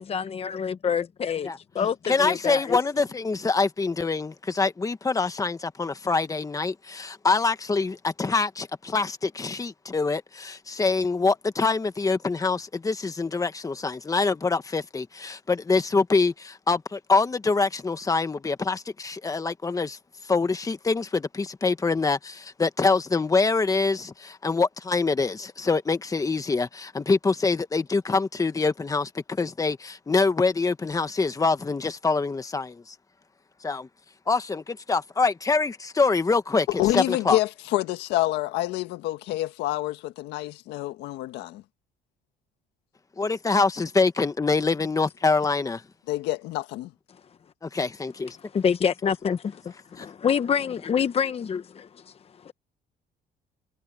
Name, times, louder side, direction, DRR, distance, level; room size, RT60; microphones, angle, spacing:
voice 1, 0.0-1.5 1.7-2.8 48.5-52.1 52.4-52.5, left 7 dB, 35° left, 1.1 m, -27 dB
voice 2, 2.1-20.0 20.3-32.9 33.6-33.9 34.3-36.7 36.9-37.4 43.2-45.8 47.6-48.4 50.0-50.1, left 4 dB, 20° left, 1.5 m, -25 dB
voice 3, 36.8-41.6 46.1-46.9, left 16 dB, 90° left, 1.6 m, -27 dB
cardioid pair, 110°, 17 cm